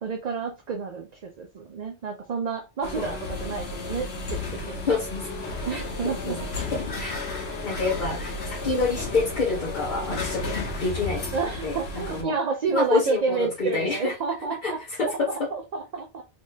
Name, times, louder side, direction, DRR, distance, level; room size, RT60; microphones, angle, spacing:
voice 1, 0.0-5.0 5.7-6.4 11.3-14.8 15.1-16.2, right 5 dB, 55° right, 0.5 m, -30 dB
sound 1, 2.8-12.2, left 3 dB, 65° left, 1.3 m, -33 dB
voice 2, 4.9-5.3 5.7-6.4 6.7-7.2 7.6-11.2 11.6-12.3 12.7-14.1 14.6-14.7 15.0-15.3, left 3 dB, 45° left, 1.2 m, -27 dB
sound 2, 5.1-10.6, left 4 dB, 25° left, 0.4 m, -42 dB
3.4 x 3.1 x 2.7 m
omnidirectional pair, 1.2 m